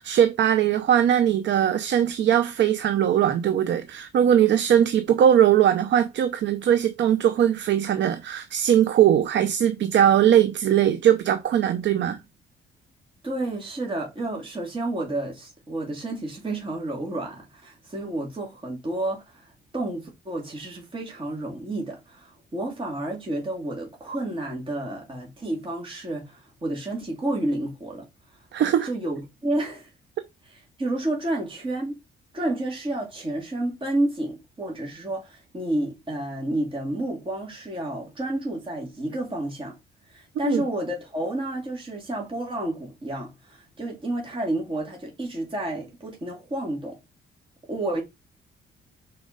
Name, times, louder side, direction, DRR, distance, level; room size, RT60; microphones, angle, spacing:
voice 1, 0.0-12.2 28.5-28.9 40.4-40.6, right 10 dB, 65° right, 0.7 m, -20 dB
voice 2, 13.2-28.0 28.8-29.9 30.5-32.0 32.3-39.8 40.1-47.0 47.7-48.0, right 1 dB, 25° right, 2.4 m, -30 dB
6.2 x 4.5 x 3.9 m
cardioid pair, 90°, 20 cm